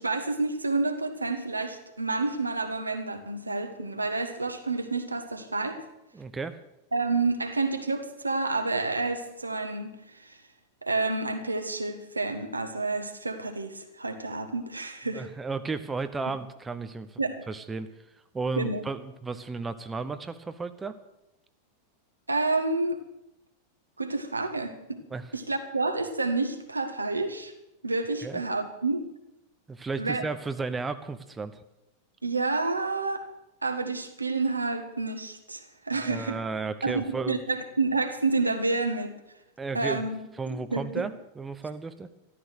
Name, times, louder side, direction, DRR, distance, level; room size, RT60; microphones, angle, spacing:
voice 1, 0.0-5.8 6.9-10.4 10.8-15.3 17.2-17.4 18.6-18.8 22.3-23.0 24.0-25.0 25.3-27.5 27.8-29.0 30.0-30.3 32.2-33.3 33.6-36.4 36.8-39.2 39.7-40.2 40.5-41.0, right 3 dB, 80° right, 7 dB, 1.5 m, -29 dB
voice 2, 6.1-6.6 15.1-17.2 17.5-17.9 18.3-20.9 25.1-25.3 28.2-28.4 29.7-31.5 35.9-37.4 39.6-40.0 40.4-42.1, right 4 dB, 15° right, 10 dB, 0.8 m, -33 dB
13.5 x 13.0 x 6.5 m, 0.90 s
figure-of-eight pair, 90°, 0 cm